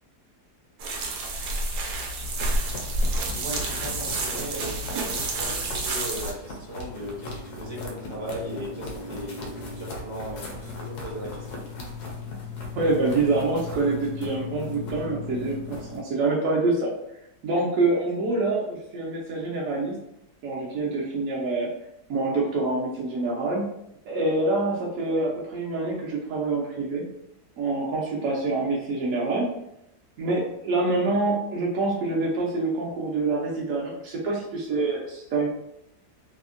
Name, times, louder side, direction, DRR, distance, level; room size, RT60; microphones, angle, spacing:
sound 1, 0.8-6.3, right 2 dB, 85° right, 1.2 m, -29 dB
sound 2, 2.3-16.0, left 3 dB, 75° left, 1.2 m, -37 dB
voice 1, 3.3-11.6, equal, 35° right, -4 dB, 0.4 m, -37 dB
voice 2, 12.8-16.9 17.4-20.0 20.4-21.7 22.1-23.7 24.1-27.1 27.6-29.5 30.2-35.5, right 3 dB, 70° right, -4 dB, 0.9 m, -26 dB
3.4 x 2.1 x 2.4 m, 0.82 s
omnidirectional pair, 1.7 m